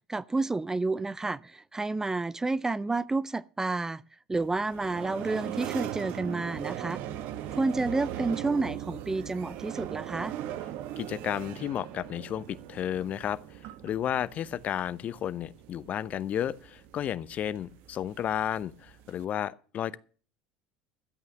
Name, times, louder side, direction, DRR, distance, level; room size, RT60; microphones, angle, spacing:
voice 1, 0.1-4.0 4.3-7.0 7.5-10.3, right 3 dB, 15° right, 0.5 m, -30 dB
sound 1, 4.4-19.3, right 12 dB, 60° right, 1.1 m, -40 dB
voice 2, 11.0-13.4 13.8-20.0, left 10 dB, 45° left, 0.8 m, -32 dB
13.0 x 8.4 x 6.4 m
hypercardioid pair, 75°, 3 cm